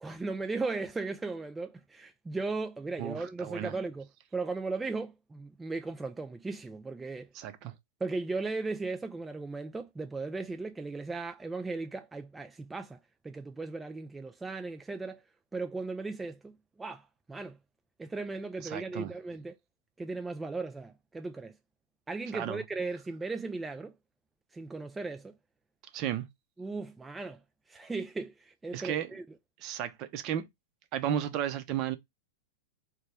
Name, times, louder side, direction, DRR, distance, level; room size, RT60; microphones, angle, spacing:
voice 1, 0.0-7.3 8.0-13.0 13.2-15.2 15.5-17.6 18.0-19.6 20.0-21.6 22.1-23.9 24.5-25.4 26.6-27.4 27.7-29.3, right 3 dB, 10° right, 0.3 m, -37 dB
voice 2, 3.0-3.7 7.3-7.7 18.6-19.1 22.3-22.6 25.9-26.3 28.7-29.1 29.6-30.4 30.9-32.0, right 10 dB, 45° right, 0.7 m, -33 dB
2.9 x 2.2 x 3.4 m
hypercardioid pair, 105°, 0 cm